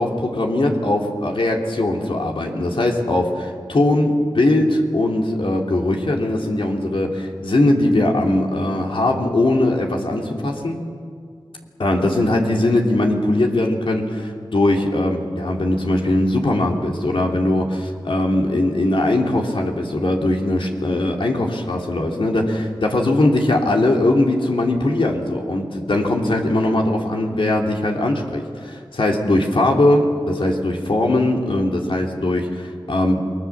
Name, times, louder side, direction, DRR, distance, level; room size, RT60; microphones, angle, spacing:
voice 1, 0.0-10.8 11.8-33.2, left 1 dB, 75° left, 1 dB, 3.0 m, -20 dB
28.0 x 20.5 x 7.4 m, 2.2 s
cardioid pair, 40°, 9 cm